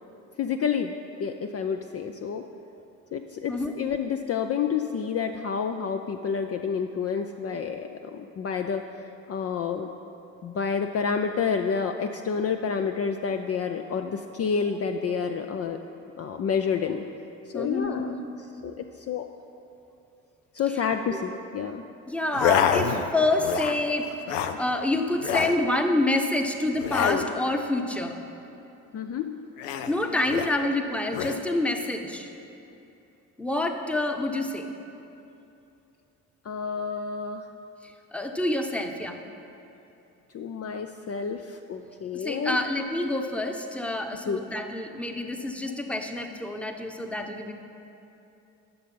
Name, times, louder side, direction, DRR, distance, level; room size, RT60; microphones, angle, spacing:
voice 1, 0.4-2.4 3.1-8.8 9.3-9.9 10.4-15.8 16.2-17.0 17.5-18.1 18.6-18.7 19.1-19.3 20.5-21.8 28.9-29.3 36.5-37.4 40.3-42.6 44.3-44.4, left 6 dB, 40° left, 6 dB, 0.5 m, -29 dB
voice 2, 17.5-18.2 20.7-20.8 22.1-24.1 24.6-28.2 29.9-32.3 33.4-34.7 37.8-39.2 42.1-47.5, left 2 dB, 5° left, 5 dB, 0.9 m, -27 dB
sound 1, 22.3-23.1 23.4-23.8 24.1-24.6 25.2-25.6 26.8-27.3 29.6-30.5 31.1-31.4, left 8 dB, 90° left, 0.5 m, -26 dB
11.0 x 6.6 x 5.4 m, 2.8 s
hypercardioid pair, 55°, 37 cm